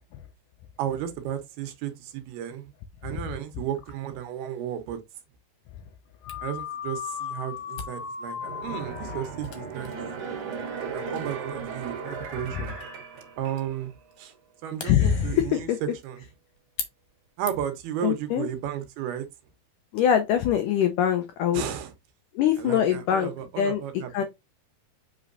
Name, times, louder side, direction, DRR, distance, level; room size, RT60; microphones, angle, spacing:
voice 1, 0.8-2.7 3.0-5.0 6.4-9.9 10.9-12.7 13.4-13.9 14.2-14.3 14.6-15.7 16.0-16.2 17.4-19.3 21.5-21.9 22.6-24.2, right 10 dB, 75° right, 2.9 m, -33 dB
sound 1, 6.2-10.8, left 8 dB, 75° left, 2.5 m, -38 dB
Camera, 6.3-17.9, left 6 dB, 60° left, 2.4 m, -45 dB
sound 2, 8.4-13.9 14.3-14.4, right 5 dB, 55° right, 2.6 m, -36 dB
voice 2, 14.8-15.8 18.0-18.5 19.9-21.6 22.4-23.3 23.6-23.8 24.1-24.2, left 9 dB, 90° left, 1.8 m, -23 dB
7.3 x 5.3 x 2.6 m
omnidirectional pair, 4.7 m